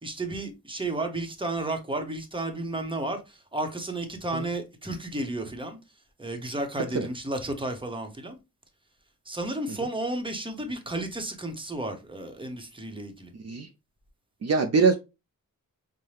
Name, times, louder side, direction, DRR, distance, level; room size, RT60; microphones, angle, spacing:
voice 1, 0.0-5.8 6.2-8.4 9.3-13.3, right 2 dB, 15° right, 0.9 m, -32 dB
voice 2, 14.4-15.0, right 4 dB, 50° right, 0.5 m, -23 dB
5.5 x 2.2 x 3.2 m
wide cardioid pair, 110°, 33 cm